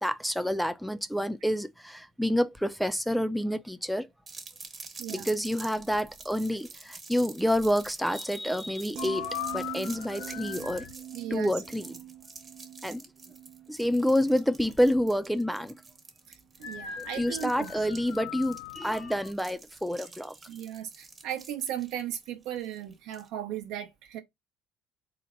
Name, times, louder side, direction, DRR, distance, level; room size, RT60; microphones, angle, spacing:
voice 1, 0.0-4.1 5.1-10.9 11.3-12.0 12.8-13.0 13.7-15.7 17.0-20.3, equal, ahead, 0.4 m, -28 dB
sound 1, 4.3-23.3, right 4 dB, 30° right, 1.1 m, -48 dB
voice 2, 5.0-5.3 11.1-11.5 16.3-17.7 20.5-24.2, right 11 dB, 75° right, 0.8 m, -37 dB
sound 2, 8.9-15.2 15.6-15.9, right 10 dB, 60° right, 0.4 m, -45 dB
sound 3, 9.0-11.0 16.6-19.3, left 10 dB, 80° left, 0.5 m, -39 dB
4.1 x 2.1 x 3.7 m
supercardioid pair, 80°, 0 cm